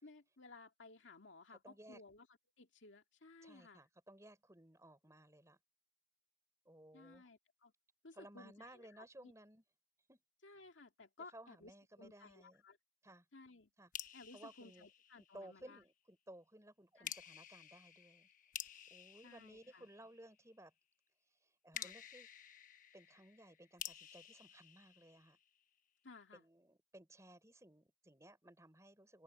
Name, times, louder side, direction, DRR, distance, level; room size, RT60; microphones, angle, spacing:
voice 1, 0.0-2.3 2.6-3.8 6.9-7.7 8.0-9.3 10.4-11.7 12.0-12.8 13.3-13.7 14.1-15.8 17.0-17.1 19.2-19.9 21.7-21.9 26.0-26.4, left 3 dB, 75° left, 2.2 m, -58 dB
voice 2, 1.6-2.0 3.4-5.6 6.6-7.3 8.1-9.6 10.1-10.2 11.3-12.6 13.0-13.3 13.8-13.9 14.3-14.9 15.2-18.3 18.9-20.7 21.4-22.3 22.9-25.4 26.3-29.2, right 1 dB, 15° right, 4.0 m, -59 dB
sound 1, 13.9-15.7 17.0-20.4 21.7-25.6, left 10 dB, 45° left, 1.0 m, -51 dB
open air
head